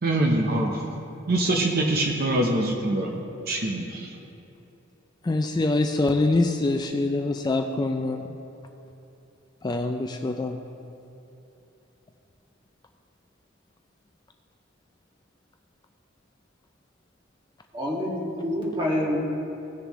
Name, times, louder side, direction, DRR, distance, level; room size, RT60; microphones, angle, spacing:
voice 1, 0.0-0.9 1.3-3.2 3.5-4.1, right 1 dB, 50° right, 1 dB, 0.7 m, -24 dB
voice 2, 5.2-8.2 9.6-10.6, left 2 dB, 20° left, 5 dB, 0.4 m, -24 dB
voice 3, 17.7-19.2, left 1 dB, 25° right, -4 dB, 2.0 m, -27 dB
17.0 x 6.8 x 3.1 m, 2.9 s
head